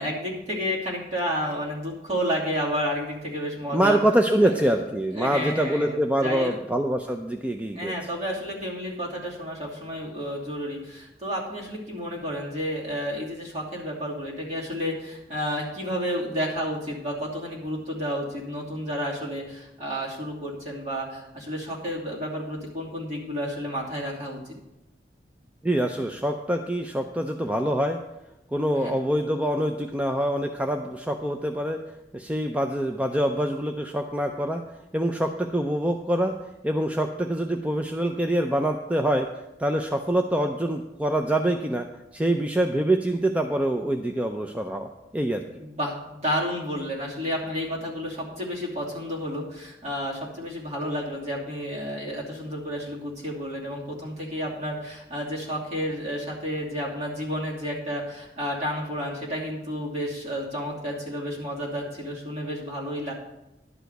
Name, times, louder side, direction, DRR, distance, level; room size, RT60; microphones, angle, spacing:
voice 1, 0.0-4.0 4.4-4.5 5.1-6.6 7.7-24.6 28.7-29.0 45.6-63.1, equal, 40° right, -4 dB, 2.8 m, -31 dB
voice 2, 3.7-7.9 25.6-28.0 28.5-31.8 32.1-34.6 34.9-36.3 36.6-39.3 39.6-41.9 42.1-45.4, right 1 dB, 10° right, 4 dB, 0.5 m, -25 dB
11.5 x 4.9 x 7.9 m, 0.92 s
head